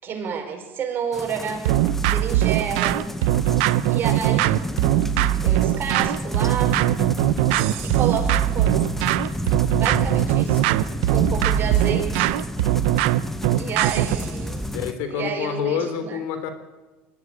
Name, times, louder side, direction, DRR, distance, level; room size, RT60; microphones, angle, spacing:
voice 1, 0.0-1.8 2.1-3.0 3.9-4.6 5.4-7.0 7.8-8.8 9.8-10.7 11.1-12.3 13.6-14.7 15.1-16.2, right 7 dB, 40° right, 3 dB, 5.2 m, -30 dB
sound 1, 1.1-14.9, left 1 dB, 5° left, 1.4 m, -31 dB
sound 2, 1.7-14.3, right 15 dB, 80° right, 0.9 m, -21 dB
voice 2, 14.7-16.5, left 8 dB, 75° left, 9 dB, 3.3 m, -27 dB
21.5 x 13.5 x 9.8 m, 1.2 s
supercardioid pair, 110°, 6 cm